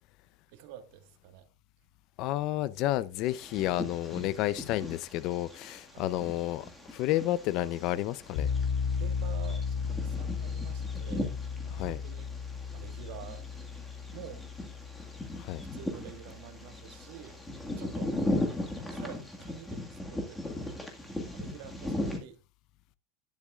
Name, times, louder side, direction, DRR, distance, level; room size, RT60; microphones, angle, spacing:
voice 1, 0.5-1.5 5.9-6.1 8.9-11.3 11.7-12.3 12.7-13.5 14.1-14.5 15.7-17.4 17.7-18.2 18.6-20.8 21.3-22.4, right 10 dB, 60° right, 1.6 m, -48 dB
voice 2, 2.2-8.5 11.7-12.0 15.4-15.6 18.3-18.4, left 14 dB, 45° left, 0.5 m, -31 dB
Bird vocalization bird call bird song, 3.3-22.2, left 1 dB, 5° left, 1.8 m, -38 dB
sound 1, 8.4-17.2, left 6 dB, 65° left, 3.0 m, -35 dB
12.0 x 10.5 x 2.4 m
supercardioid pair, 165°, 0 cm